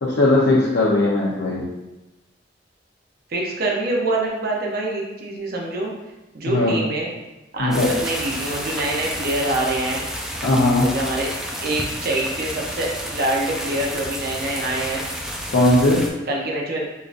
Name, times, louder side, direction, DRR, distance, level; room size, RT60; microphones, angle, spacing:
voice 1, 0.0-1.6 6.5-6.8 7.6-7.9 10.4-10.9 15.5-16.0, left 2 dB, 80° left, -7 dB, 0.7 m, -18 dB
voice 2, 3.3-5.9 6.3-7.1 7.5-10.0 10.8-11.3 11.6-15.0 16.3-16.8, right 2 dB, 55° right, -2 dB, 0.7 m, -25 dB
sound 1, 7.7-16.1, equal, 5° right, 0.4 m, -31 dB
5.0 x 2.6 x 2.5 m, 1.0 s
head